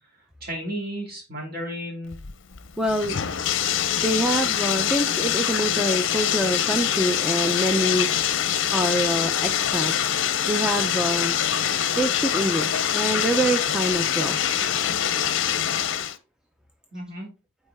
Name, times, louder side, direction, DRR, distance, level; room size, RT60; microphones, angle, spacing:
voice 1, 0.4-2.2 16.9-17.3, equal, 45° right, 0 dB, 2.5 m, -33 dB
Bathtub (filling or washing), 2.1-16.2, left 9 dB, 55° left, 0.6 m, -24 dB
voice 2, 2.8-3.2 4.0-8.1 8.7-9.9 10.5-11.4 12.0-14.4, right 1 dB, 5° right, 4 dB, 0.4 m, -25 dB
8.4 x 4.6 x 3.4 m, 0.30 s
head